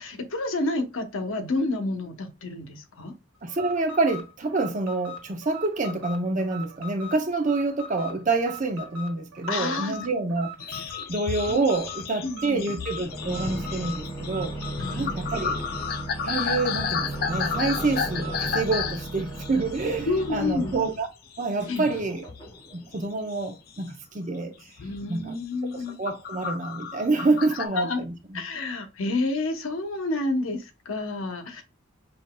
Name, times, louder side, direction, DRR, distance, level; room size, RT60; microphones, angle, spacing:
voice 1, 0.0-3.1 9.5-10.0 11.5-11.6 12.2-12.7 14.8-15.2 20.1-20.8 21.7-21.9 24.8-25.9 27.5-28.0 28.3-31.6, left 2 dB, 85° left, 0.8 m, -29 dB
voice 2, 3.4-14.5 14.9-15.6 16.2-21.1 21.4-22.3 22.7-24.5 25.1-25.3 25.7-28.4, right 3 dB, 40° right, 0.6 m, -27 dB
Alarm, 3.5-18.9, left 1 dB, 85° right, 1.2 m, -41 dB
sound 1, 10.6-21.1 21.3-22.0 22.3-23.8 24.2-24.4 24.8-25.0 25.5-27.7, left 6 dB, 45° left, 0.3 m, -33 dB
sound 2, 13.0-21.0 21.6-22.9 23.5-23.6, right 1 dB, 20° left, 1.2 m, -35 dB
5.6 x 2.5 x 2.2 m
head